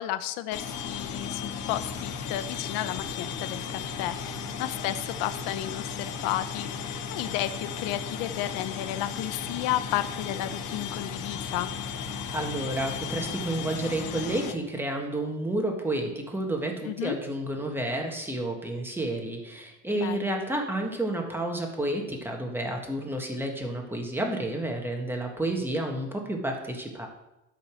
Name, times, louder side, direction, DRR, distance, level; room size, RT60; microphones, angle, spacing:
voice 1, 0.0-11.7 16.9-17.1 19.9-20.4, left 13 dB, 80° left, 12 dB, 0.8 m, -33 dB
sound 1, 0.5-14.5, left 6 dB, 60° left, 1.3 m, -35 dB
voice 2, 12.3-27.1, right 1 dB, 5° right, 2 dB, 1.7 m, -30 dB
12.0 x 4.2 x 6.3 m, 0.93 s
cardioid pair, 125°, 33 cm